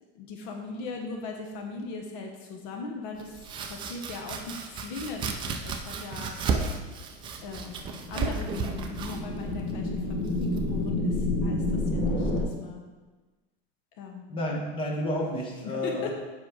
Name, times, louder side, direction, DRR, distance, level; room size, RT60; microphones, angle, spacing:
voice 1, 0.1-6.4 7.4-7.8 8.1-12.8 14.0-14.2 15.6-16.1, left 4 dB, 55° left, 2 dB, 1.0 m, -39 dB
Domestic sounds home sounds, 3.2-10.9, right 5 dB, 15° right, 0.4 m, -34 dB
sound 1, 7.5-12.4, left 2 dB, 35° left, 1.4 m, -29 dB
voice 2, 14.3-16.1, left 1 dB, 15° left, -2 dB, 1.3 m, -30 dB
7.7 x 5.5 x 4.9 m, 1.3 s
supercardioid pair, 165°, 30 cm